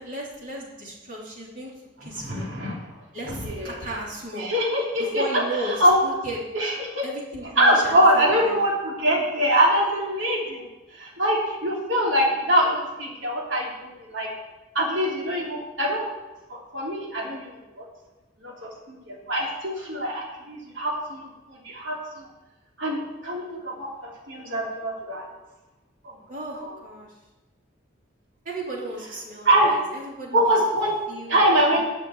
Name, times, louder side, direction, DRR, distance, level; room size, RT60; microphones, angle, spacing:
voice 1, 0.0-1.7 2.0-2.5 3.1-4.5 5.0-6.4 7.0-8.5 26.3-27.1 28.4-30.5 31.1-31.4, right 1 dB, 45° right, -4 dB, 3.1 m, -35 dB
voice 2, 2.1-2.8 3.3-3.7 4.4-6.0 6.5-7.0 7.6-10.6 10.9-14.3 14.7-16.1 16.5-17.9 18.4-22.3 22.8-25.2 26.6-26.8 29.4-29.8 30.3-30.9 31.3-31.9, equal, 85° right, -2 dB, 3.2 m, -23 dB
12.0 x 5.5 x 8.7 m, 1.1 s
head